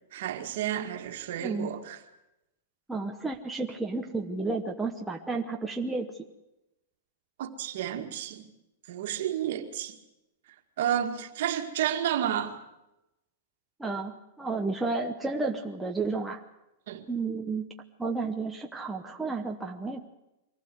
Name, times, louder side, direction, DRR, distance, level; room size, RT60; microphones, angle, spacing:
voice 1, 0.1-2.0 7.4-8.5 8.9-10.0 10.8-12.6 16.9-17.1, right 10 dB, 60° right, 2.0 m, -31 dB
voice 2, 1.4-1.7 2.9-6.1 13.8-16.4 17.1-17.7 18.0-20.0, right 3 dB, 5° right, 0.9 m, -32 dB
23.0 x 15.5 x 7.9 m
supercardioid pair, 165°, 0 cm